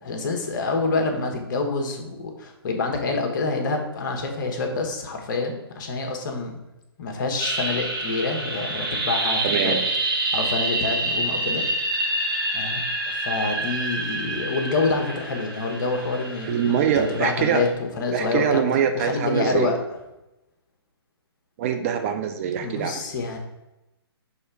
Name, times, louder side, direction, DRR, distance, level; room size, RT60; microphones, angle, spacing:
voice 1, 0.0-6.5 7.0-9.8 10.3-11.6 12.1-12.2 12.5-12.8 13.1-18.6 18.9-19.8 22.6-23.4, left 3 dB, 50° left, 3 dB, 1.2 m, -27 dB
sound 1, 7.4-17.7, right 2 dB, 55° right, 1.5 m, -27 dB
voice 2, 9.4-9.8 16.4-17.7 18.1-19.7 21.6-23.0, right 8 dB, 30° right, 6 dB, 0.5 m, -23 dB
6.4 x 3.3 x 4.7 m, 0.95 s
figure-of-eight pair, 135°, 14 cm